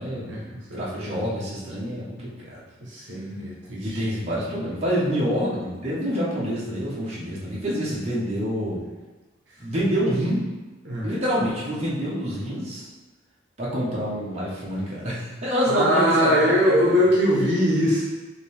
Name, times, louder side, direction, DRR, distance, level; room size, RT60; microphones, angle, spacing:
voice 1, 0.0-2.6 3.7-8.8 9.6-10.4 11.0-12.9 13.6-16.9, equal, 30° right, -8 dB, 1.0 m, -27 dB
voice 2, 0.7-1.1 2.8-4.0 10.8-11.1 15.6-18.0, equal, 60° right, -5 dB, 0.9 m, -22 dB
5.1 x 2.7 x 3.4 m, 1.2 s
head